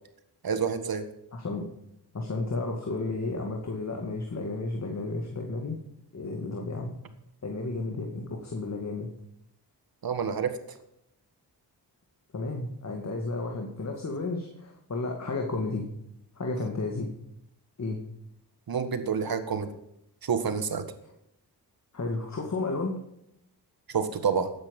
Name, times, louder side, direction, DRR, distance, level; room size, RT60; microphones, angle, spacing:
voice 1, 0.4-1.1 10.0-10.6 18.7-19.7 20.2-20.9 23.9-24.5, right 6 dB, 60° right, 9 dB, 1.7 m, -28 dB
voice 2, 1.3-1.7 2.1-5.8 6.1-7.0 7.4-9.1 12.3-15.9 16.4-17.1 17.8-18.0 21.9-23.0, left 3 dB, 40° left, 2 dB, 2.2 m, -32 dB
13.0 x 8.9 x 5.5 m, 0.79 s
cardioid pair, 80°, 41 cm